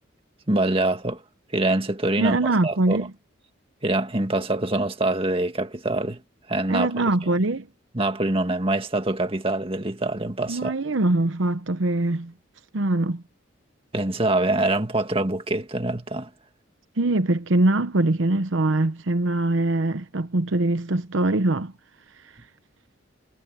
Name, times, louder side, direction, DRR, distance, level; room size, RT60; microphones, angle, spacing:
voice 1, 0.5-1.2 1.5-2.4 2.6-3.1 3.8-6.2 6.5-7.1 7.9-10.8 13.9-16.3, right 2 dB, 30° right, 2.0 m, -24 dB
voice 2, 2.2-3.1 6.7-7.7 10.5-12.3 12.7-13.2 17.0-21.7, right 2 dB, 75° right, 0.9 m, -23 dB
head